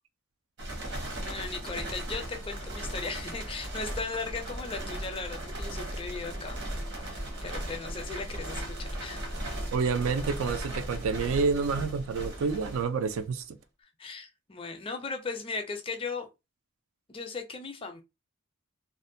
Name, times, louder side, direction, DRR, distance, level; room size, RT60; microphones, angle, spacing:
sound 1, 0.6-13.4, right 1 dB, 55° right, 0.9 m, -37 dB
voice 1, 0.9-6.6 7.1-9.3 14.0-16.3 17.1-18.0, left 4 dB, 25° left, 0.4 m, -37 dB
voice 2, 9.7-13.6, right 5 dB, 75° right, 0.3 m, -28 dB
2.5 x 2.1 x 2.6 m
head